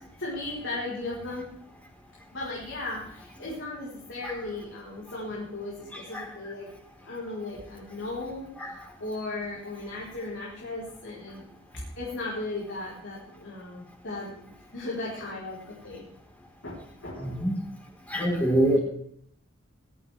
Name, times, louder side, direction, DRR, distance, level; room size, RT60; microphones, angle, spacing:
voice 1, 0.2-1.5 2.3-6.7 7.0-11.5 11.7-16.0 16.6-17.4, left 2 dB, 60° left, -5 dB, 4.6 m, -36 dB
voice 2, 5.9-6.3 8.6-8.7 17.2-17.6 18.1-18.8, right 1 dB, 5° left, -2 dB, 4.6 m, -25 dB
20.5 x 14.5 x 3.6 m, 0.66 s
head